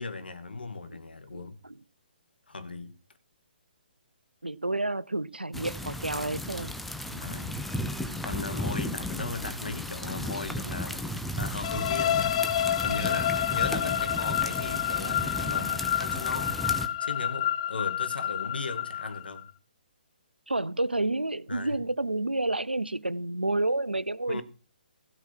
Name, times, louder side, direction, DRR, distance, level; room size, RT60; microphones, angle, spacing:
voice 1, 0.0-1.6 2.5-2.9 7.1-7.6 8.2-11.0 11.3-12.4 12.8-16.6 17.0-19.5 21.5-21.8 24.3-24.4, left 3 dB, 75° left, 2.4 m, -37 dB
voice 2, 1.3-1.8 4.4-6.7 20.5-24.4, right 2 dB, 90° right, 0.6 m, -30 dB
sound 1, 5.5-16.9, left 1 dB, ahead, 1.1 m, -34 dB
sound 2, 11.6-19.4, left 10 dB, 40° left, 0.6 m, -29 dB
16.0 x 5.9 x 6.1 m
figure-of-eight pair, 135°, 5 cm